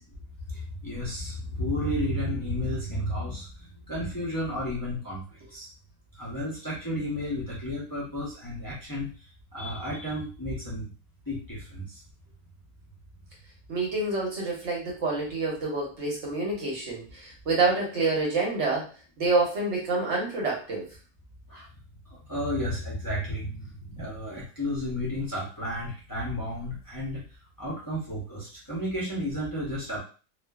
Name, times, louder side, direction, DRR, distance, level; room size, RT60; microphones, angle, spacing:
voice 1, 0.8-3.5 3.9-5.2 5.5-5.7 6.2-9.1 9.5-10.9 11.3-11.8 21.5-21.7 22.3-27.2 27.6-30.0, left 1 dB, 30° left, -7 dB, 0.4 m, -32 dB
voice 2, 13.7-18.9 19.2-20.9, right 3 dB, 55° right, -2 dB, 1.0 m, -27 dB
2.4 x 2.4 x 2.3 m, 0.36 s
omnidirectional pair, 1.7 m